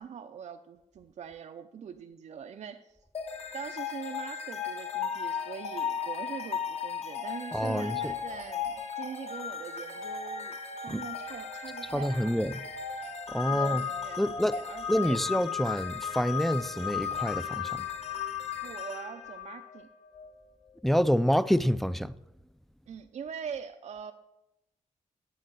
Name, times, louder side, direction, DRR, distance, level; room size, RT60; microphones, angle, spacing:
voice 1, 0.0-3.0 3.5-10.6 10.8-12.4 13.5-15.2 18.6-19.9 22.9-24.1, right 7 dB, 60° right, 0.5 m, -43 dB
sound 1, 3.1-20.3, left 7 dB, 55° left, 1.1 m, -36 dB
voice 2, 7.5-8.1 10.9-11.0 11.9-12.5 13.3-13.8 14.2-14.6 14.9-17.8 20.8-22.1, equal, ahead, 0.3 m, -27 dB
8.5 x 7.1 x 6.6 m
wide cardioid pair, 120°, 13 cm